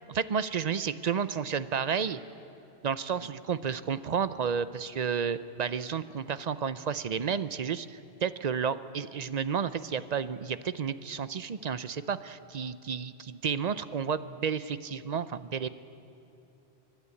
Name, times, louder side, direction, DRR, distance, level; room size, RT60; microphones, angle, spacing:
voice 1, 0.1-2.2 2.8-15.7, right 7 dB, 45° right, 14 dB, 0.6 m, -31 dB
30.0 x 11.5 x 8.4 m, 2.8 s
omnidirectional pair, 1.1 m